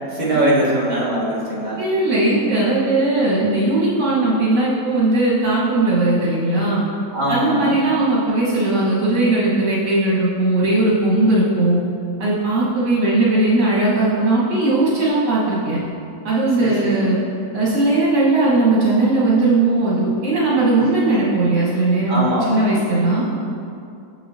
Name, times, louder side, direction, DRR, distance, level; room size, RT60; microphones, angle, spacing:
voice 1, 0.1-1.8 7.1-7.8 16.6-17.1 21.1-21.2 22.1-23.2, right 1 dB, 30° right, -7 dB, 1.3 m, -22 dB
voice 2, 1.8-6.8 7.3-11.8 12.2-15.8 16.2-17.2 17.5-23.2, right 2 dB, 70° right, -7 dB, 2.0 m, -18 dB
7.0 x 6.8 x 2.7 m, 2.5 s
omnidirectional pair, 1.9 m